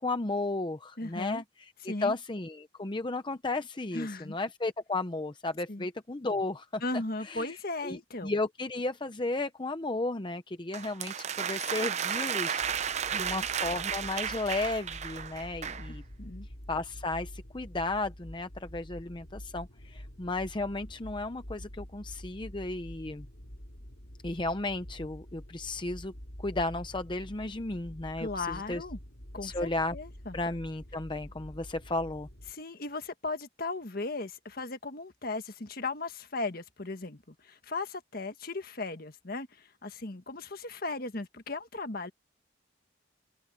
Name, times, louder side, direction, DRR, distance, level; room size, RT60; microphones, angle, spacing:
voice 1, 0.0-1.4 1.8-6.8 7.3-7.5 7.8-16.0 16.7-23.3 24.2-26.1 26.4-28.8 29.4-29.9 30.3-32.3, left 2 dB, 25° left, 0.7 m, -34 dB
voice 2, 1.0-1.4 1.8-2.1 3.9-4.4 5.7-5.9 6.8-8.3 13.1-13.5 15.7-16.5 28.2-29.0 29.3-30.4 32.5-42.1, left 3 dB, 50° left, 1.6 m, -37 dB
sound 1, 10.7-15.9, right 8 dB, 35° right, 0.6 m, -33 dB
sound 2, 12.6-32.5, equal, 70° left, 3.8 m, -47 dB
open air
head